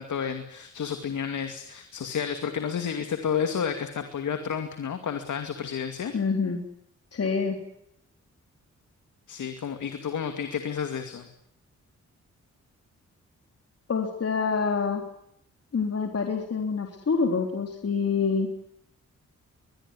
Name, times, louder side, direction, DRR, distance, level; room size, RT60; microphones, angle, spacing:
voice 1, 0.0-6.1 9.3-11.3, left 7 dB, 90° left, 7 dB, 2.4 m, -31 dB
voice 2, 6.1-6.6 7.1-7.6 13.9-15.0 15.7-18.5, left 5 dB, 55° left, 3 dB, 3.7 m, -26 dB
22.0 x 22.0 x 9.9 m, 0.76 s
cardioid pair, 90°, 29 cm